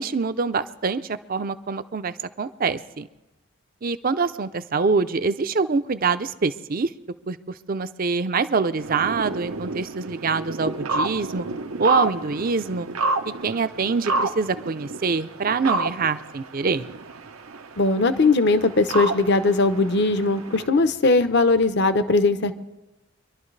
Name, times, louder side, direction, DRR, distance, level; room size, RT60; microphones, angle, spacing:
voice 1, 0.0-3.1 3.8-6.9 7.3-7.4 7.7-11.5 11.8-12.9 13.3-16.9, right 4 dB, 40° right, 12 dB, 0.5 m, -25 dB
sound 1, 8.8-20.7, right 2 dB, 85° right, 0.9 m, -30 dB
voice 2, 17.8-22.5, left 3 dB, 55° left, 10 dB, 0.8 m, -19 dB
25.5 x 11.5 x 3.3 m, 1.0 s
head